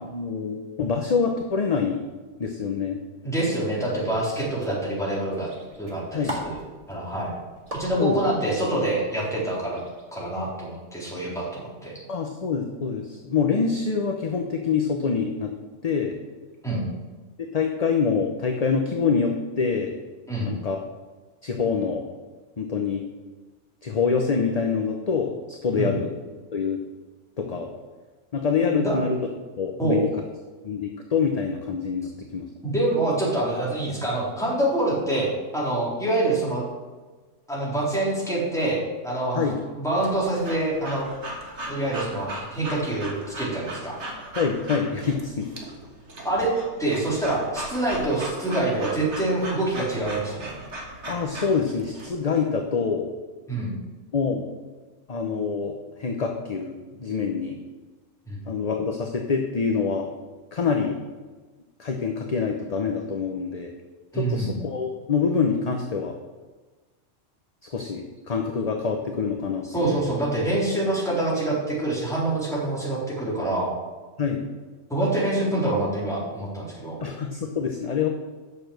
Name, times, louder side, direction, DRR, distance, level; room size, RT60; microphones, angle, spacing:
voice 1, 0.0-2.0 2.4-3.0 6.1-6.3 8.0-8.2 12.1-15.5 15.8-16.2 17.4-20.0 20.4-20.8 21.4-22.0 22.6-23.0 23.8-26.1 26.5-26.8 27.4-27.7 28.3-29.2 29.6-30.1 30.6-32.5 39.3-39.6 44.4-45.5 51.1-53.1 54.1-54.5 55.1-57.6 58.5-60.1 60.5-61.0 61.8-63.7 64.1-66.1 67.7-70.1 74.2-74.5 77.0-78.1, left 5 dB, 35° left, 3 dB, 0.7 m, -26 dB
voice 2, 3.2-5.5 5.8-6.6 6.9-7.4 7.7-9.8 10.1-11.9 16.6-16.9 20.3-20.5 25.8-25.9 28.7-29.0 29.8-30.0 32.6-36.7 37.5-39.5 39.8-41.1 41.7-43.9 46.2-46.5 46.8-50.5 53.5-53.8 58.3-58.4 64.1-64.5 69.7-73.7 74.9-77.0, right 2 dB, ahead, -7 dB, 3.8 m, -26 dB
sound 1, 3.8-10.3, right 1 dB, 30° right, 2.0 m, -41 dB
Breathing / Dog, 40.0-52.1, right 1 dB, 60° right, 1.9 m, -38 dB
8.6 x 6.8 x 6.6 m, 1.3 s
omnidirectional pair, 1.3 m